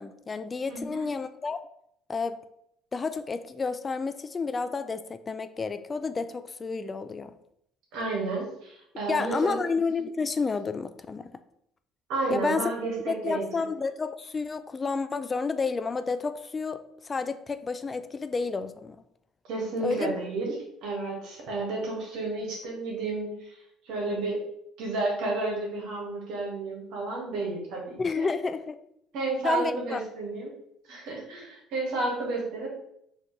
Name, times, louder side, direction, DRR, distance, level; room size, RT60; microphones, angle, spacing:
voice 1, 0.0-1.6 2.1-2.4 2.9-7.4 9.1-11.3 12.3-12.6 13.1-19.0 19.8-20.1 28.0-28.8 29.4-30.0, left 4 dB, 30° left, 11 dB, 0.3 m, -30 dB
voice 2, 0.7-1.0 7.9-9.6 12.1-13.4 19.5-24.4 24.8-28.3 29.1-30.5 30.9-32.7, right 3 dB, 70° right, -2 dB, 1.5 m, -31 dB
4.0 x 3.0 x 3.2 m, 0.75 s
hypercardioid pair, 70°, 0 cm